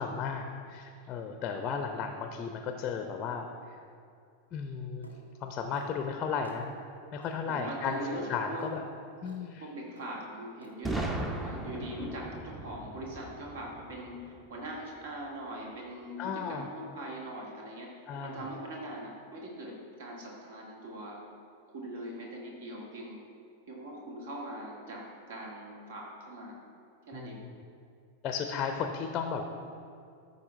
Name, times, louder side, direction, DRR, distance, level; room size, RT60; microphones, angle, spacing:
voice 1, 0.0-3.5 4.5-5.1 5.4-6.7 7.1-8.9 9.2-9.6 16.2-16.7 18.1-18.4 27.1-27.5 28.2-29.4, left 6 dB, 30° left, 5 dB, 0.6 m, -34 dB
sound 1, 5.0-5.2 5.7-5.9 6.4-6.6 7.2-7.4 7.9-8.1 8.6-8.7 9.3-9.4 10.0-10.1 10.6-10.8, left 1 dB, 85° right, 0.8 m, -52 dB
voice 2, 7.5-8.6 9.6-17.9 18.2-21.3 21.7-23.2 23.7-26.6 27.1-27.4, right 1 dB, 55° right, -2 dB, 1.8 m, -41 dB
Boom, 10.8-14.7, right 2 dB, 10° right, 0.7 m, -37 dB
13.0 x 5.5 x 3.3 m, 2.4 s
figure-of-eight pair, 90°, 0 cm